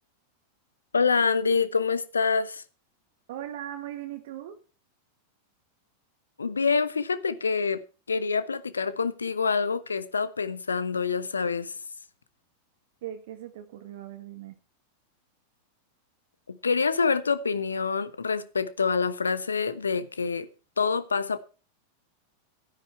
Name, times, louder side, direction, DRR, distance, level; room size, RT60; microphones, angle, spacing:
voice 1, 0.9-2.6 6.4-7.8 8.1-11.7 16.5-20.5 20.8-21.4, left 5 dB, 75° left, 1.0 m, -26 dB
voice 2, 3.3-4.6 13.0-14.6, right 12 dB, 55° right, 1.4 m, -39 dB
13.0 x 10.5 x 4.5 m
figure-of-eight pair, 90°, 0 cm